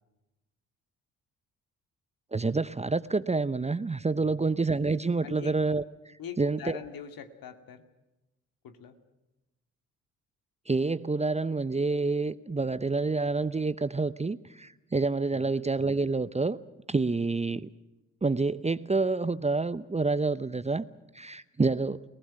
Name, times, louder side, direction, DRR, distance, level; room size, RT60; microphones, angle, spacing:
voice 1, 2.3-6.8 10.7-16.6 16.9-17.7 18.2-20.8 21.1-22.0, right 3 dB, 15° right, 16 dB, 0.8 m, -28 dB
voice 2, 4.2-4.5 5.2-5.5 6.2-7.8 8.6-9.0 15.3-15.5, left 8 dB, 60° left, 8 dB, 2.4 m, -43 dB
30.0 x 19.0 x 6.0 m, 1.0 s
hypercardioid pair, 40°, 39 cm